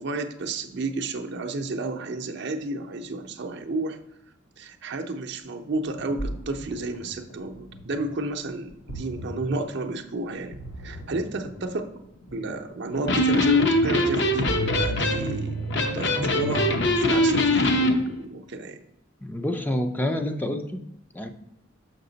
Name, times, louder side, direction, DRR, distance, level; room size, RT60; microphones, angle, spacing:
voice 1, 0.0-4.0 4.6-10.6 10.8-11.9 12.3-15.6 15.9-18.8, right 2 dB, 60° right, 4 dB, 0.6 m, -31 dB
Ocean, 5.7-16.5, right 1 dB, 85° left, 1.0 m, -39 dB
Electric guitar, 12.9-17.9, left 1 dB, 65° left, 0.8 m, -22 dB
voice 2, 19.2-20.8 21.1-21.3, left 1 dB, 10° left, 5 dB, 0.4 m, -28 dB
6.6 x 5.7 x 3.9 m, 0.82 s
head